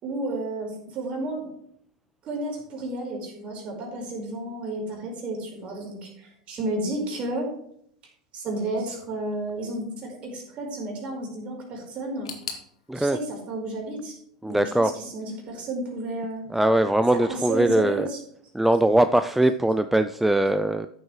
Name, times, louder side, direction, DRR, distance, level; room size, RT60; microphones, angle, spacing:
voice 1, 0.0-1.5 2.2-7.5 8.3-12.3 12.9-16.4 17.1-18.2, right 2 dB, 40° right, 0 dB, 4.2 m, -32 dB
sound 1, 12.2-15.1 15.4-16.2 16.5-16.6 17.4-17.5, left 6 dB, 70° left, 1.5 m, -43 dB
voice 2, 14.4-14.9 16.5-18.1 18.5-20.9, right 1 dB, 5° right, 11 dB, 0.4 m, -21 dB
13.5 x 7.9 x 3.2 m, 0.70 s
figure-of-eight pair, 85°, 3 cm